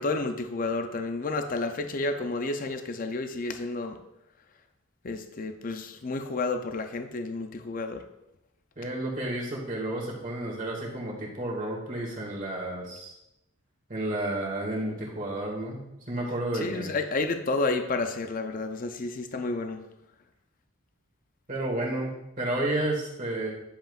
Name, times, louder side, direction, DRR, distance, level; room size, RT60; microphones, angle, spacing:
voice 1, 0.0-4.0 5.0-8.0 16.5-19.8, left 3 dB, 40° left, 7 dB, 0.5 m, -31 dB
voice 2, 8.8-13.1 13.9-16.9 21.5-23.5, right 1 dB, 35° right, -2 dB, 2.0 m, -31 dB
10.5 x 7.1 x 2.4 m, 0.87 s
head